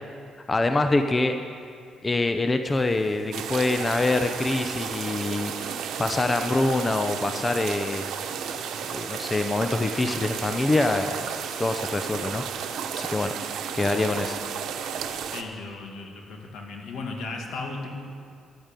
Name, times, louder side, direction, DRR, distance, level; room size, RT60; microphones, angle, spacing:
voice 1, 0.5-1.3 2.0-5.5 6.0-8.1 8.9-11.2 11.6-12.4 12.9-13.3 13.7-14.4, left 2 dB, 25° left, 7 dB, 0.7 m, -25 dB
sound 1, 2.6-12.0, left 2 dB, 40° left, 4.0 m, -52 dB
sound 2, 3.3-15.4, right 7 dB, 80° right, 1.0 m, -33 dB
voice 2, 15.3-17.9, left 3 dB, 75° left, 1 dB, 2.2 m, -36 dB
11.5 x 8.8 x 9.1 m, 2.3 s
cardioid pair, 90°, 0 cm